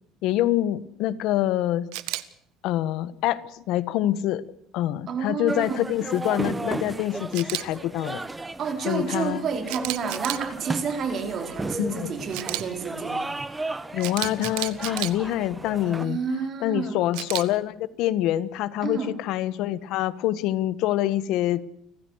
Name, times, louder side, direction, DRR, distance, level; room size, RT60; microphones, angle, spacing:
voice 1, 0.2-1.9 2.6-4.4 4.7-8.2 8.8-9.4 11.8-12.1 13.9-16.2 16.6-21.7, left 13 dB, 65° left, 16 dB, 1.3 m, -26 dB
Camera, 1.9-2.2 7.3-7.6 9.7-10.4 12.3-12.6 14.0-15.1 17.1-17.4, right 19 dB, 85° right, 1.5 m, -31 dB
voice 2, 5.1-5.8 8.6-13.3 16.0-17.0 18.8-19.1, right 6 dB, 40° right, 6 dB, 4.2 m, -30 dB
sound 1, 5.5-16.1, right 2 dB, 10° right, 1.1 m, -35 dB
29.5 x 15.5 x 6.4 m, 0.76 s
cardioid pair, 155°, 0 cm